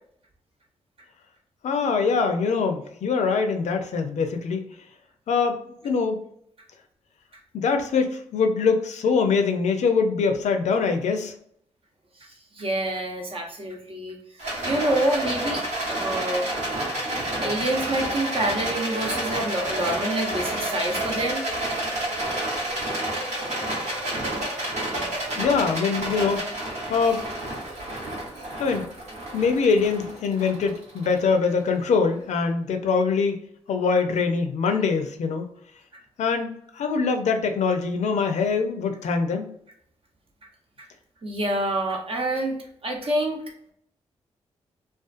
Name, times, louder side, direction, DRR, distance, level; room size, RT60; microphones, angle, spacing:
voice 1, 1.6-4.6 5.3-6.2 7.5-11.3 17.4-17.5 25.4-27.2 28.6-28.8 29.3-33.4 33.7-35.5 36.2-39.5, left 5 dB, 75° left, 6 dB, 0.4 m, -23 dB
voice 2, 12.2-14.2 14.4-16.5 17.4-21.4 41.2-42.6 42.8-43.4, right 1 dB, 50° right, 1 dB, 0.8 m, -27 dB
Rattle, 14.4-31.8, right 1 dB, 80° right, 1.0 m, -30 dB
2.4 x 2.3 x 2.4 m, 0.68 s
supercardioid pair, 45°, 12 cm